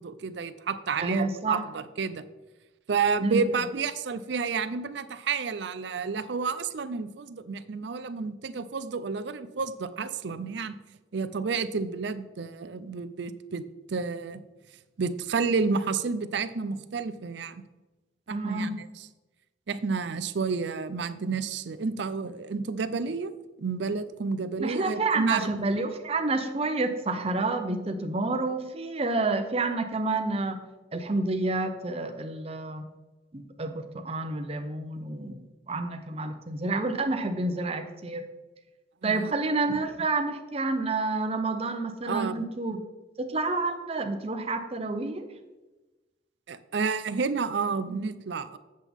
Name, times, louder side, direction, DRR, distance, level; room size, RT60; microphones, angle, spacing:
voice 1, 0.0-2.2 2.9-10.8 11.1-14.4 15.0-17.5 18.3-19.1 19.7-23.3 23.6-25.5 39.0-39.3 42.1-42.4 46.5-48.6, right 5 dB, 65° right, 12 dB, 0.5 m, -30 dB
voice 2, 1.0-1.6 3.2-3.5 18.3-18.7 24.6-30.6 30.9-32.8 33.3-35.4 35.7-38.3 39.0-42.8 43.2-45.3, right 3 dB, 30° right, 6 dB, 0.7 m, -29 dB
8.2 x 7.4 x 3.5 m, 1.1 s
head